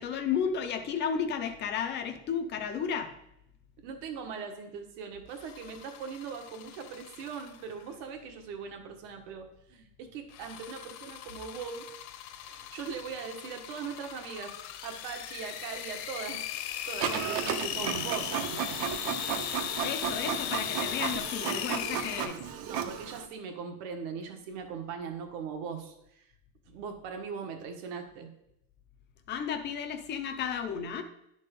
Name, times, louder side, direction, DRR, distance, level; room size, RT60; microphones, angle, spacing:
voice 1, 0.0-3.1 19.8-22.5 29.3-31.0, left 7 dB, 25° left, 6 dB, 0.4 m, -33 dB
voice 2, 3.8-11.8 12.4-16.4 16.9-18.8 22.6-26.3 26.7-28.3, right 6 dB, 70° right, 5 dB, 1.6 m, -40 dB
sound 1, 5.3-7.8 10.3-22.2, left 11 dB, 50° left, 0.8 m, -38 dB
Printer, 17.0-23.3, right 8 dB, 50° right, 0.7 m, -34 dB
11.0 x 4.2 x 5.2 m, 0.81 s
cardioid pair, 170°, 48 cm